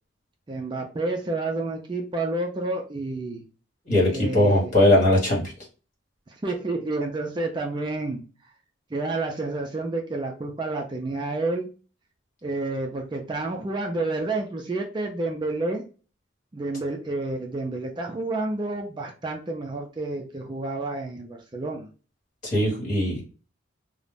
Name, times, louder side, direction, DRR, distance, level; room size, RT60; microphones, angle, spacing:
voice 1, 0.5-3.4 4.1-4.7 6.4-8.2 8.9-11.7 12.4-15.8 16.5-21.9, right 2 dB, 25° right, 2 dB, 0.3 m, -29 dB
voice 2, 3.9-5.5 22.4-23.2, left 1 dB, 40° left, -4 dB, 1.2 m, -20 dB
2.4 x 2.0 x 3.2 m, 0.35 s
head